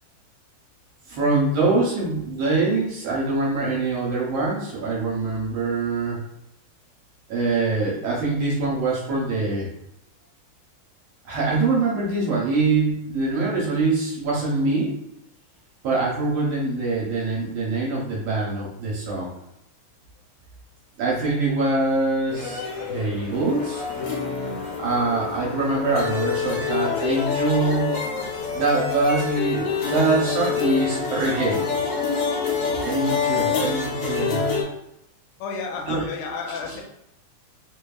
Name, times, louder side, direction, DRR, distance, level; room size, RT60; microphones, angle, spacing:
voice 1, 1.1-6.2 7.3-9.7 11.2-14.9 15.8-19.3 21.0-22.6 22.9-23.8 24.8-28.0 28.5-31.6 32.8-34.7 35.9-36.0 36.6-36.8, right 3 dB, 70° right, -5 dB, 1.7 m, -24 dB
sound 1, 22.3-34.6, left 5 dB, 70° left, 2.1 m, -26 dB
voice 2, 35.4-36.8, left 5 dB, 90° left, 1 dB, 2.2 m, -31 dB
4.4 x 3.3 x 2.3 m, 0.83 s
omnidirectional pair, 3.5 m